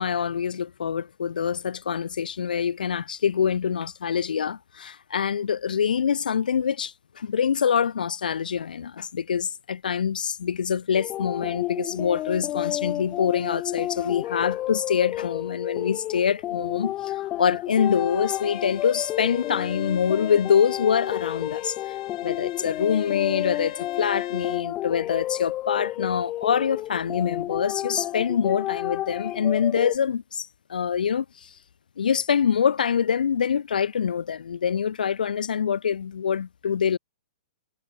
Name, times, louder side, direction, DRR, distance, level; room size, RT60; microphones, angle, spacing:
voice 1, 0.0-21.7 22.2-31.2 32.0-37.0, left 7 dB, 90° left, 0.8 m, -25 dB
sound 1, 10.9-30.0, left 14 dB, 25° left, 1.3 m, -31 dB
Bowed string instrument, 17.7-24.7, left 16 dB, 45° left, 1.0 m, -42 dB
hypercardioid pair, 155°, 4 cm